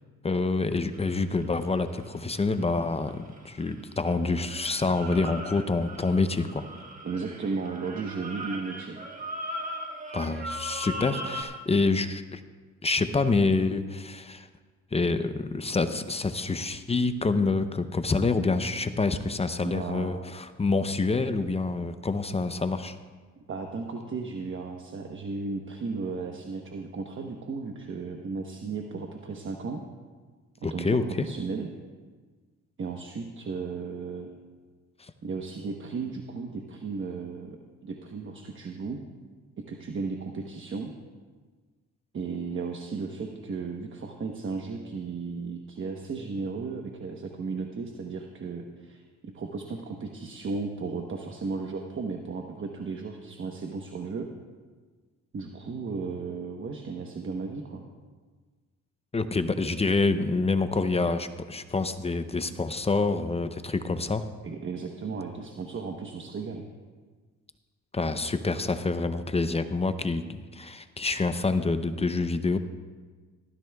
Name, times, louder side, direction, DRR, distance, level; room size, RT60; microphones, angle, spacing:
voice 1, 0.2-6.7 10.1-12.4 12.8-14.5 14.9-23.0 30.6-31.3 35.0-35.1 59.1-64.3 67.9-72.6, left 3 dB, 20° left, 10 dB, 0.6 m, -27 dB
sound 1, 0.9-4.0 4.4-11.4, equal, 25° right, 1.5 m, -39 dB
voice 2, 7.0-9.0 19.6-20.2 23.4-29.8 30.7-31.7 32.8-34.3 35.2-37.6 37.8-39.0 39.6-40.9 42.1-54.3 55.3-57.8 64.4-66.6, right 4 dB, 40° right, 3 dB, 1.1 m, -35 dB
19.0 x 14.0 x 2.3 m, 1.4 s
cardioid pair, 90°, 30 cm